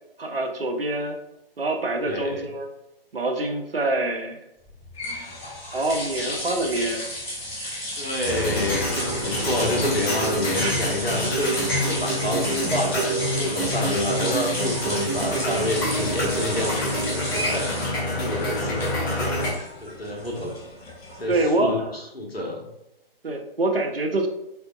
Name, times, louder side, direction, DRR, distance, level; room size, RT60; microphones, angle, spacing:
voice 1, 0.2-1.2 1.6-2.7 3.1-4.5 5.7-7.1 10.6-10.8 21.3-21.9 23.2-24.3, right 2 dB, 70° right, 4 dB, 0.7 m, -25 dB
voice 2, 2.0-2.4 8.0-8.9 9.2-17.7 18.1-19.5 19.8-20.5 21.2-22.7, left 1 dB, 80° left, -1 dB, 1.2 m, -28 dB
sound 1, 4.6-21.7, equal, 5° left, 0.4 m, -33 dB
sound 2, 8.2-19.5, equal, 20° left, 1.0 m, -27 dB
3.7 x 3.4 x 2.4 m, 0.86 s
figure-of-eight pair, 140°, 30 cm